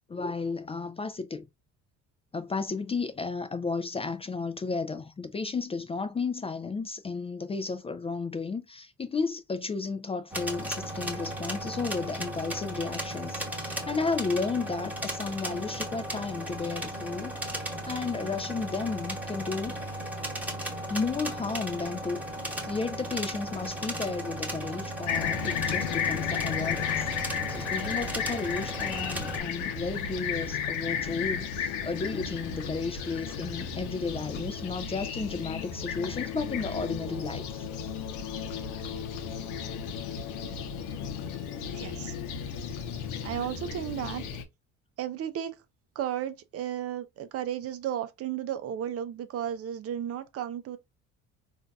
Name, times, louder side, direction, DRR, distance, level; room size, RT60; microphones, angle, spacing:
voice 1, 0.1-1.5 2.3-20.0 20.9-22.2 22.6-37.7, left 4 dB, 20° left, 0.4 m, -33 dB
sound 1, 10.3-29.4, right 1 dB, 5° right, 1.1 m, -36 dB
Fixed-wing aircraft airplane, 25.1-44.4, left 7 dB, 80° left, 0.7 m, -34 dB
voice 2, 41.6-42.2 43.2-44.2 45.0-45.6 45.9-50.8, right 10 dB, 50° right, 0.5 m, -34 dB
3.7 x 2.5 x 2.2 m
supercardioid pair, 85°, 30 cm